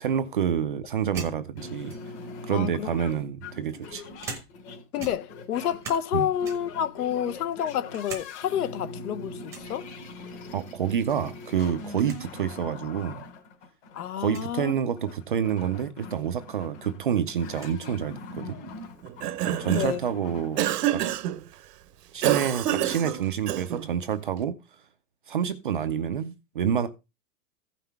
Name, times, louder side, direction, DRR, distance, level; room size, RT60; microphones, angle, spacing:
voice 1, 0.0-1.9 2.4-4.0 6.1-6.3 10.5-13.2 14.2-18.6 19.4-20.6 20.9-21.0 22.1-24.6 25.3-26.9, right 8 dB, 35° right, 0.4 m, -28 dB
sound 1, 1.1-2.3 3.1-4.7 5.0-6.1 6.4-6.8 7.3-8.3 8.6-8.7 9.5-9.8 11.2-11.5 11.8-11.9 12.1-12.2 13.1-13.2 14.2-14.5 16.2-16.3 16.6-17.8, right 4 dB, 5° right, 0.8 m, -42 dB
sound 2, 1.6-20.7, left 3 dB, 45° left, 2.9 m, -42 dB
voice 2, 2.5-2.9 4.9-9.9 13.9-14.8 19.7-20.0, left 10 dB, 65° left, 1.1 m, -29 dB
Cough, 19.0-20.0 20.6-21.4 22.2-23.9, right 12 dB, 75° right, 1.0 m, -27 dB
15.0 x 5.7 x 3.4 m
supercardioid pair, 175°, 48 cm